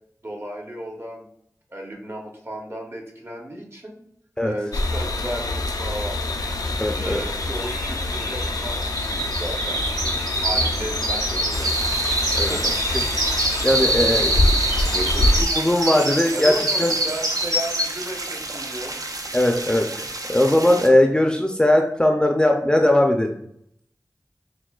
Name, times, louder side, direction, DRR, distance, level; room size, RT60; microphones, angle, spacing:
voice 1, 0.2-1.3 1.7-4.0 4.4-6.2 7.0-10.0 10.4-11.8 12.3-12.7 13.3-13.4 14.9-15.5 16.3-19.0, right 1 dB, 40° right, 0 dB, 0.9 m, -34 dB
sound 1, 4.7-15.4, left 2 dB, 80° left, 0.3 m, -25 dB
sound 2, 6.4-6.5 6.7-18.2 18.6-18.9 19.3-19.4, right 1 dB, 90° right, 1.0 m, -25 dB
voice 2, 6.8-7.2 12.4-12.7 13.6-14.4 15.2-16.5 16.8-16.9 19.3-23.3, left 1 dB, 15° left, 3 dB, 0.4 m, -19 dB
sound 3, 11.5-20.9, right 2 dB, 70° right, 0.5 m, -33 dB
6.0 x 2.2 x 2.3 m, 0.70 s
wide cardioid pair, 45°, 6 cm